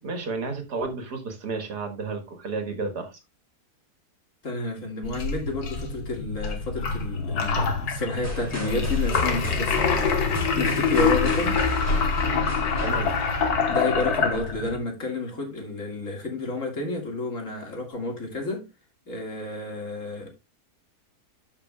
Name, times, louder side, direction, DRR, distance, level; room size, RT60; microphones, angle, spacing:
voice 1, 0.0-3.2 12.8-13.1, right 3 dB, 90° right, 2.2 m, -32 dB
voice 2, 4.4-11.6 13.7-18.7 19.1-20.3, left 2 dB, 55° left, 2.4 m, -30 dB
sound 1, 5.0-14.8, left 5 dB, 70° left, 1.8 m, -25 dB
sound 2, 8.2-14.1, left 1 dB, 10° left, 3.4 m, -35 dB
13.0 x 5.8 x 2.3 m
omnidirectional pair, 1.7 m